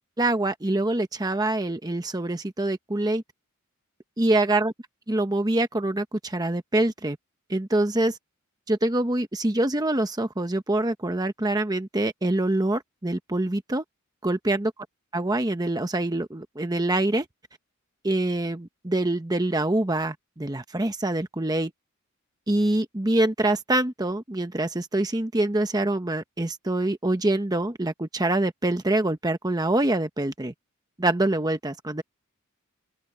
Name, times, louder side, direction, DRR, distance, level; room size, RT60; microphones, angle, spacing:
voice 1, 0.2-3.2 4.2-4.7 5.1-7.2 7.5-8.2 8.7-13.8 14.2-14.7 15.1-17.3 18.0-21.7 22.5-30.5 31.0-32.0, right 2 dB, 20° right, 0.9 m, -25 dB
open air
head